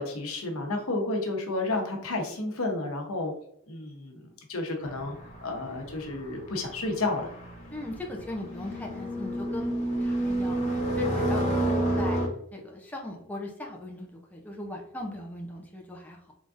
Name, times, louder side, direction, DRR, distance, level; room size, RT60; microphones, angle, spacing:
voice 1, 0.0-3.3 3.7-5.2 5.4-7.3, left 2 dB, 85° left, 3 dB, 0.9 m, -31 dB
sound 1, 4.8-12.3, right 1 dB, 35° left, 1.0 m, -30 dB
voice 2, 7.7-9.7 10.0-12.2 12.5-16.3, left 1 dB, 5° left, 0 dB, 0.5 m, -39 dB
3.8 x 3.6 x 2.5 m, 0.72 s
head